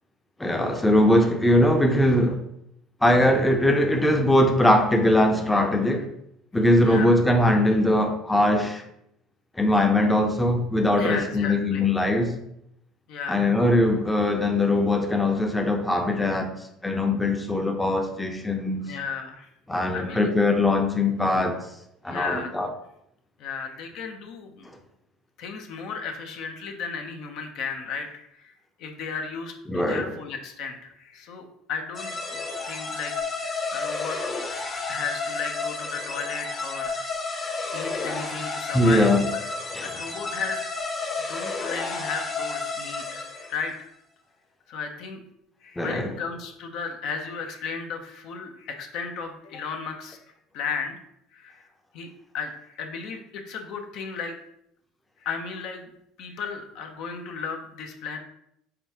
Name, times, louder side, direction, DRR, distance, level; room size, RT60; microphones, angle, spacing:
voice 1, 0.4-2.4 3.0-6.1 6.5-8.8 9.6-12.4 13.3-16.6 16.8-18.8 19.7-21.7 22.0-22.7 29.7-30.1 38.7-39.2 39.7-39.9 45.8-46.1, left 1 dB, 10° left, 0.6 m, -21 dB
voice 2, 6.8-7.1 11.0-11.9 13.1-13.5 18.8-19.5 19.9-20.3 22.1-22.5 23.4-24.7 25.4-28.5 28.8-32.4 32.6-33.1 33.4-34.2 34.9-37.1 37.7-39.4 39.8-40.7 41.2-43.9 44.7-45.2 45.6-50.2 50.5-51.0 51.3-51.6 51.9-52.1 52.3-54.4 55.2-55.9 56.2-58.2, left 5 dB, 65° left, 0.7 m, -34 dB
sound 1, 31.9-43.6, left 4 dB, 30° left, 0.9 m, -31 dB
5.1 x 3.5 x 2.9 m
supercardioid pair, 95°, 0 cm